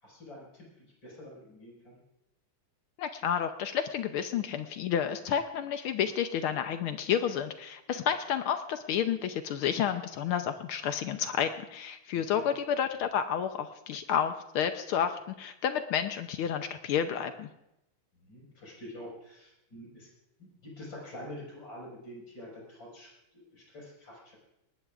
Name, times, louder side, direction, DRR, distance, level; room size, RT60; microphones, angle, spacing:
voice 1, 0.0-2.0 12.1-12.5 18.2-20.1 20.4-24.4, left 1 dB, 55° left, -4 dB, 6.2 m, -47 dB
voice 2, 3.0-17.5, left 8 dB, 80° left, 8 dB, 1.6 m, -30 dB
20.5 x 19.0 x 2.5 m, 0.87 s
omnidirectional pair, 2.4 m